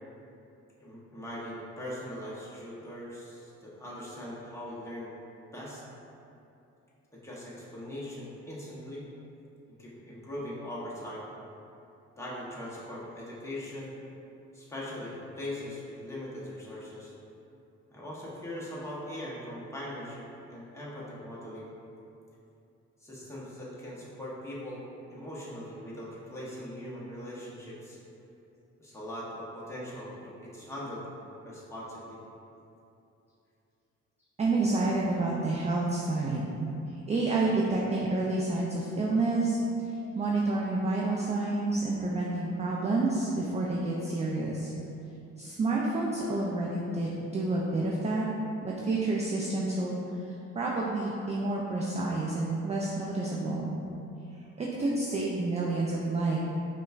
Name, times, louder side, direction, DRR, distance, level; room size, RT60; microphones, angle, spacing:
voice 1, 0.8-5.1 5.5-5.8 7.1-9.0 9.8-11.3 12.2-14.0 14.5-17.1 17.9-21.7 23.0-24.8 25.1-28.0 28.8-31.1 31.4-32.2, left 1 dB, 10° left, -7 dB, 0.9 m, -40 dB
voice 2, 34.4-36.7 37.1-39.6 40.1-44.7 45.4-48.3 48.6-50.0 50.6-53.8 54.6-56.4, right 2 dB, 25° right, -3 dB, 0.3 m, -29 dB
5.0 x 2.3 x 2.4 m, 2.8 s
cardioid pair, 90°, 30 cm